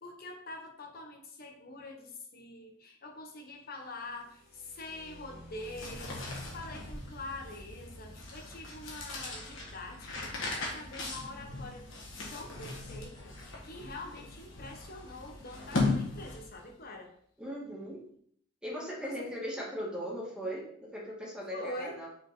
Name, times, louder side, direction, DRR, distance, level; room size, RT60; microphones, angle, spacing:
voice 1, 0.0-11.9 12.3-17.1 19.0-19.3 21.5-22.0, left 2 dB, 50° left, 2 dB, 1.2 m, -45 dB
sound 1, 3.8-11.6 13.7-13.9 14.3-14.9 15.5-15.6 16.1-16.4, equal, 35° left, 2.8 m, -53 dB
sound 2, 5.5-16.7, left 3 dB, 90° left, 1.6 m, -38 dB
voice 2, 17.4-18.0 18.6-22.1, equal, 5° right, -5 dB, 2.0 m, -38 dB
5.9 x 4.5 x 3.9 m, 0.62 s
head